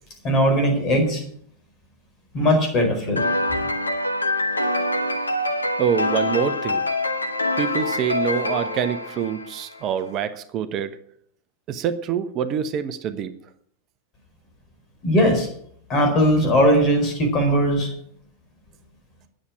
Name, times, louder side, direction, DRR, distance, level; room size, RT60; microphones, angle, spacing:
voice 1, 0.2-1.2 2.3-3.3 15.0-15.5 15.9-17.9, equal, 30° left, 3 dB, 4.8 m, -19 dB
sound 1, 3.2-9.8, left 2 dB, 80° left, 0.9 m, -25 dB
voice 2, 5.8-6.8 7.6-10.9 11.7-13.3, right 8 dB, 35° right, 10 dB, 1.0 m, -25 dB
10.0 x 7.6 x 8.8 m, 0.66 s
figure-of-eight pair, 90°, 0 cm